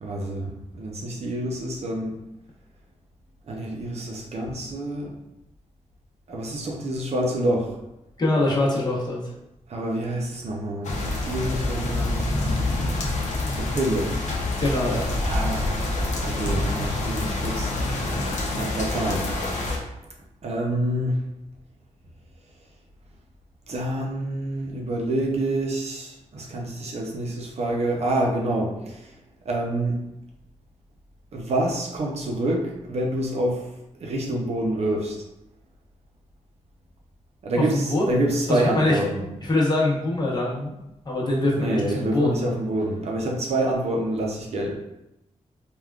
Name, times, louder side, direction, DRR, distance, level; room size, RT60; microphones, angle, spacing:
voice 1, 0.0-2.2 3.5-5.1 6.3-7.7 9.7-12.4 13.5-14.1 15.2-15.7 16.2-19.3 20.4-21.2 23.7-29.1 29.4-30.0 31.3-33.7 34.0-35.2 37.4-39.3 41.5-44.8, right 1 dB, 60° right, -1 dB, 0.6 m, -27 dB
voice 2, 8.2-9.2 14.6-15.0 37.7-38.0 38.5-39.0 39.5-40.7 41.0-42.4, left 2 dB, 35° left, -5 dB, 0.8 m, -23 dB
sound 1, 10.8-19.8, left 2 dB, 75° left, 0.6 m, -26 dB
3.4 x 2.3 x 2.3 m, 0.90 s
wide cardioid pair, 110°, 12 cm